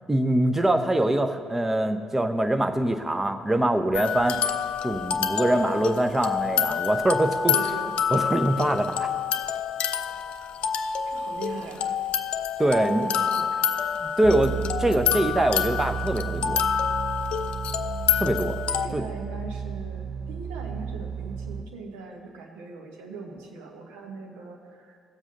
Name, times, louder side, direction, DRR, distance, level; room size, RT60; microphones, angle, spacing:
voice 1, 0.1-4.4 4.8-7.5 8.1-9.1 12.6-13.1 14.0-16.6 18.2-18.6 18.9-19.0, right 1 dB, 15° right, 7 dB, 0.7 m, -24 dB
sound 1, 3.9-18.9, left 8 dB, 50° left, 0.4 m, -27 dB
voice 2, 5.5-5.8 7.5-7.9 10.8-11.9 12.8-13.7 18.7-25.0, right 4 dB, 65° right, 1 dB, 1.1 m, -40 dB
sound 2, 14.2-21.6, right 7 dB, 50° right, 0.7 m, -33 dB
16.0 x 7.3 x 3.9 m, 2.1 s
figure-of-eight pair, 45°, 2 cm